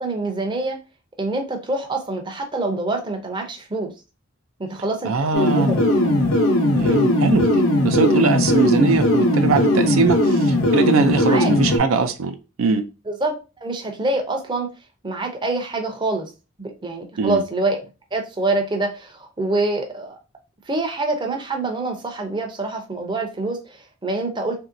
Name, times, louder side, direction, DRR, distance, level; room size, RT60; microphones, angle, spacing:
voice 1, 0.0-0.8 1.2-3.9 4.6-5.1 5.4-5.8 11.3-11.5 13.1-14.7 15.0-16.3 16.6-17.8 18.1-20.2 20.7-24.6, right 2 dB, 20° right, 0.5 m, -25 dB
voice 2, 5.0-5.7 6.7-12.8 17.2-17.4, right 4 dB, 75° right, 0.4 m, -21 dB
sound 1, 5.3-11.8, left 1 dB, 90° left, 0.8 m, -18 dB
3.0 x 2.7 x 2.5 m
head